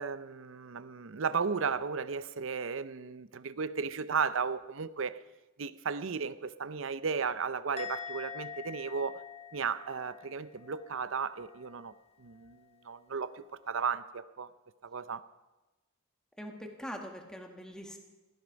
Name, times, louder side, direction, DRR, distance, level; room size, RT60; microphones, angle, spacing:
voice 1, 0.0-5.2 5.6-9.2 9.5-11.9 12.2-14.5 14.8-15.2, right 5 dB, 70° right, 15 dB, 0.6 m, -35 dB
Musical instrument, 7.8-11.2 11.4-11.8, left 7 dB, 30° left, 0.7 m, -45 dB
voice 2, 16.4-18.0, equal, 5° left, 3 dB, 1.4 m, -43 dB
16.0 x 13.0 x 5.2 m, 1.1 s
head